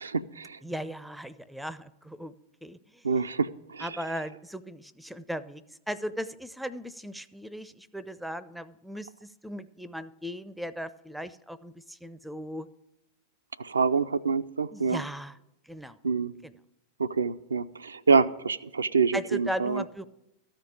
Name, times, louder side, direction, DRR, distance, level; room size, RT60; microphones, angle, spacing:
voice 1, 0.0-0.6 3.0-4.0 13.6-15.0 16.0-16.3 17.0-19.8, right 5 dB, 75° right, 11 dB, 0.3 m, -26 dB
voice 2, 0.6-2.3 2.6-3.0 3.8-9.1 9.4-12.7 14.7-15.4 15.7-16.0 16.4-16.5 19.1-20.1, equal, ahead, 16 dB, 0.4 m, -37 dB
13.5 x 5.1 x 8.4 m, 0.93 s
figure-of-eight pair, 90°, 0 cm